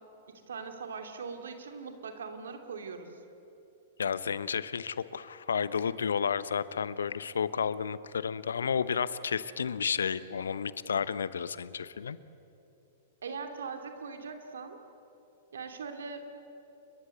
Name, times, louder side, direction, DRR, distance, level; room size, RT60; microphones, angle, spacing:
voice 1, 0.5-3.2 13.2-14.8 15.5-16.3, right 5 dB, 70° right, 5 dB, 2.8 m, -40 dB
voice 2, 4.0-12.2, left 6 dB, 75° left, 16 dB, 0.8 m, -31 dB
29.5 x 22.5 x 8.0 m, 2.9 s
figure-of-eight pair, 105°, 0 cm